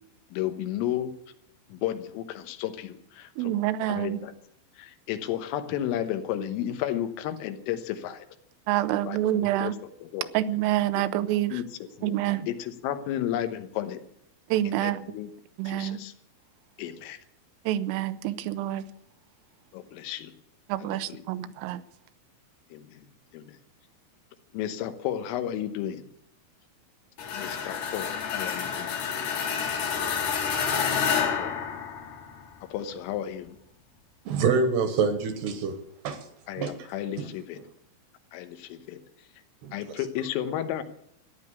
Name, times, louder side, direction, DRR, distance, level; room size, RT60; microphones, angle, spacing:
voice 1, 0.3-1.1 1.7-3.5 3.8-4.3 4.8-8.3 9.1-9.2 9.6-9.7 10.0-10.3 11.0-11.1 11.5-11.6 12.0-12.2 12.5-14.0 14.7-15.3 15.7-16.1 16.8-17.2 19.7-20.3 20.9-21.2 22.7-23.1 23.3-23.6 24.5-26.1 27.3-29.0 30.9-31.5 32.6-33.6 36.5-37.6 38.3-39.0 39.7-40.8, left 11 dB, 90° left, 3.7 m, -33 dB
voice 2, 3.4-4.3 8.7-9.8 10.3-11.6 12.0-12.5 14.5-15.0 15.6-16.0 17.7-18.9 20.7-21.8, right 13 dB, 90° right, 3.4 m, -27 dB
sound 1, 27.2-32.4, left 7 dB, 55° left, 2.9 m, -29 dB
voice 3, 34.3-35.8 36.0-36.3 36.6-36.9 37.2-37.3 39.6-39.7, right 5 dB, 70° right, 3.0 m, -26 dB
14.5 x 11.0 x 8.3 m
omnidirectional pair, 5.7 m